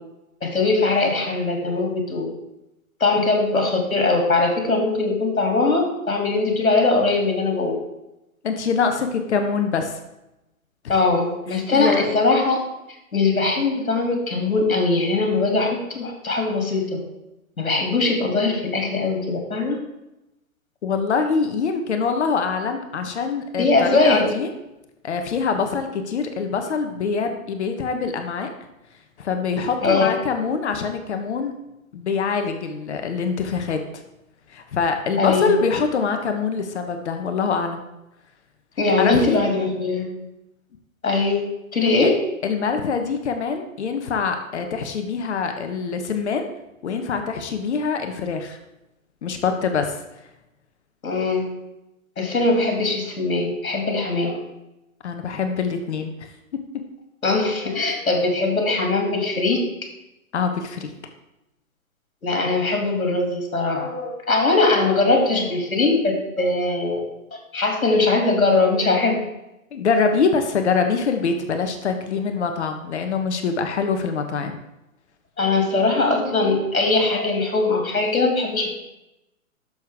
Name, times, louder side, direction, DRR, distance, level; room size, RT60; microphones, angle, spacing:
voice 1, 0.4-2.3 3.0-7.8 10.9-12.6 13.1-17.0 17.6-19.8 23.6-24.2 29.8-30.1 35.2-35.5 38.8-40.1 41.0-42.2 51.0-51.4 52.2-54.4 57.2-59.6 62.2-67.0 67.5-69.2 75.4-78.7, left 3 dB, 75° left, 2 dB, 2.8 m, -21 dB
voice 2, 8.4-10.0 11.7-12.1 20.8-24.5 25.0-28.5 29.2-31.5 31.9-34.0 34.5-37.8 39.0-39.4 42.0-42.1 42.4-46.5 46.8-48.6 49.2-50.0 55.0-56.1 56.5-56.6 60.3-60.9 69.7-74.6, left 5 dB, 55° left, 6 dB, 1.2 m, -24 dB
11.0 x 6.7 x 3.6 m, 0.92 s
figure-of-eight pair, 125°, 42 cm